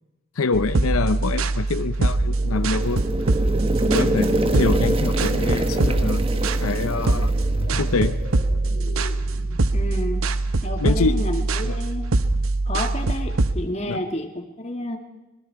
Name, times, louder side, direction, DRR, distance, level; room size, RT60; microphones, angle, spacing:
voice 1, 0.3-3.0 3.9-6.3 6.6-7.3 7.8-8.2 10.8-11.3 11.6-11.8 13.9-14.0, left 4 dB, 80° left, 12 dB, 0.7 m, -25 dB
sound 1, 0.5-13.5, right 2 dB, 75° right, 0.9 m, -23 dB
sound 2, 2.2-8.3, right 1 dB, 25° right, 1.1 m, -26 dB
sound 3, 5.2-9.8, left 1 dB, 65° left, 3.5 m, -36 dB
voice 2, 9.7-10.3 10.6-12.1 12.7-15.0, left 1 dB, 30° left, 5 dB, 1.8 m, -30 dB
25.5 x 21.5 x 4.7 m, 1.0 s
head